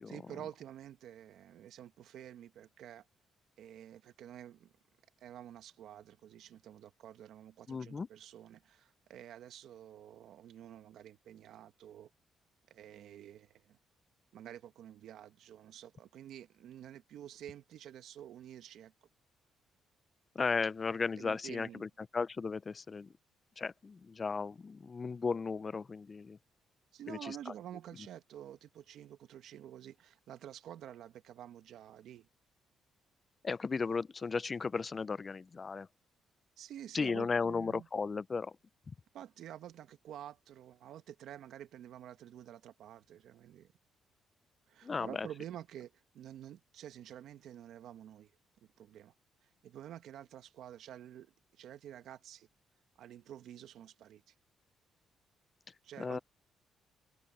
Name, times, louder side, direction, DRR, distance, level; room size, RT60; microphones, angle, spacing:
voice 1, 0.1-3.0 3.6-4.7 5.2-12.1 12.7-13.8 14.3-18.9 21.2-21.8 26.9-32.3 36.6-37.9 39.1-43.7 44.7-48.3 48.6-49.1 49.4-52.5 53.0-54.3 55.8-56.2, right 11 dB, 75° right, 1.5 m, -50 dB
voice 2, 7.7-8.1 20.3-23.1 23.6-26.4 27.1-27.5 33.4-35.9 36.9-38.5 38.9-39.0 44.8-45.3 56.0-56.2, left 4 dB, 35° left, 0.5 m, -35 dB
cardioid pair, 90°, 0 cm